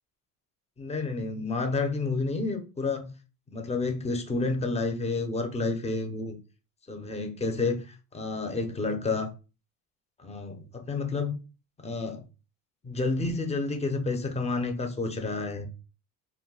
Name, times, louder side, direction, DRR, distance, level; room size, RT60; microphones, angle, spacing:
voice 1, 0.8-3.1 3.5-6.4 6.9-9.3 10.2-11.3 11.8-12.2 12.8-15.7, left 3 dB, 15° left, 0.6 m, -30 dB
2.2 x 2.2 x 3.8 m
supercardioid pair, 95°, 46 cm